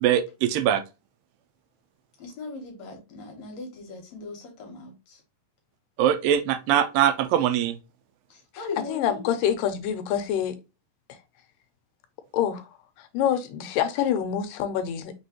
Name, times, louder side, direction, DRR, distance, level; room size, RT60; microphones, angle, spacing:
voice 1, 0.5-0.8 6.0-7.7, right 10 dB, 85° right, 2.4 m, -22 dB
voice 2, 2.2-5.2 8.3-9.2, left 3 dB, 65° left, 2.1 m, -39 dB
voice 3, 8.9-10.6 12.3-12.7 13.0-15.1, left 9 dB, 85° left, 2.2 m, -26 dB
6.0 x 3.1 x 2.9 m
omnidirectional pair, 3.9 m